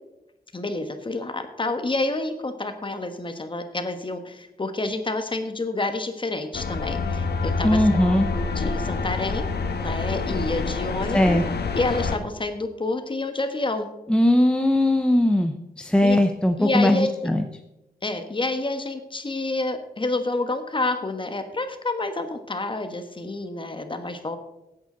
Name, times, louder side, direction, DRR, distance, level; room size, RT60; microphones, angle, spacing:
voice 1, 0.5-9.4 9.8-11.4 11.7-13.9 16.0-16.2 16.6-17.3 18.0-24.4, left 2 dB, 30° left, 7 dB, 1.4 m, -28 dB
sound 1, 6.5-12.2, left 4 dB, 80° left, 1.3 m, -27 dB
voice 2, 7.6-8.3 11.1-11.4 14.1-17.5, left 1 dB, 5° left, 5 dB, 0.7 m, -19 dB
16.0 x 9.0 x 3.9 m, 0.94 s
wide cardioid pair, 115°, 17 cm